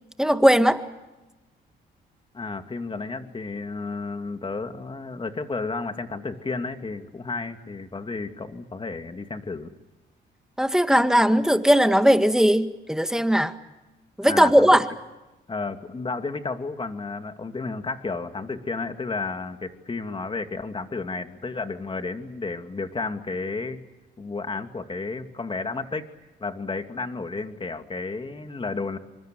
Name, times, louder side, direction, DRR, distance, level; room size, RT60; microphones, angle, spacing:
voice 1, 0.2-0.8 10.6-13.5 14.2-14.8, equal, 5° right, 9 dB, 1.7 m, -18 dB
voice 2, 2.3-9.7 14.3-14.7 15.5-23.8 24.2-26.1 26.4-29.0, left 3 dB, 25° left, 7 dB, 2.5 m, -32 dB
28.0 x 25.0 x 7.8 m, 1.0 s
cardioid pair, 90°, 20 cm